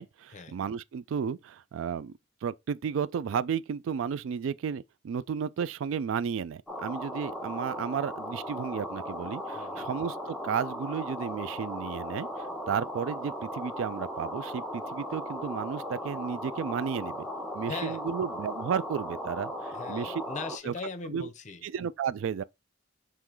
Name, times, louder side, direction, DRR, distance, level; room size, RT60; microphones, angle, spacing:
voice 1, 0.0-2.1 2.4-12.3 12.7-17.3 17.5-20.2 20.7-20.8 21.1-21.3 21.6-22.4, right 7 dB, 75° right, 0.3 m, -33 dB
sound 1, 6.7-20.6, equal, ahead, 0.7 m, -37 dB
voice 2, 9.5-9.9 17.7-18.0 19.7-21.7, left 4 dB, 40° left, 0.6 m, -40 dB
3.7 x 3.1 x 4.5 m
head